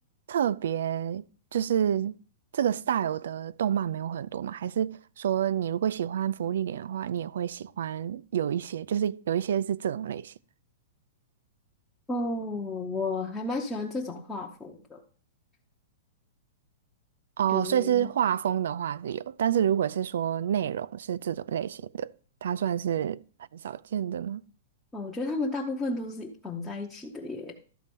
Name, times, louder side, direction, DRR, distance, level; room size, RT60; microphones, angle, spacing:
voice 1, 0.3-1.2 1.5-2.1 2.5-10.3 17.4-22.1 22.4-23.2 23.5-24.4, right 9 dB, 75° right, 0.4 m, -28 dB
voice 2, 12.1-15.0 17.5-18.1 24.9-27.5, left 2 dB, 5° left, 0.8 m, -33 dB
12.0 x 4.3 x 5.3 m
supercardioid pair, 170°, 0 cm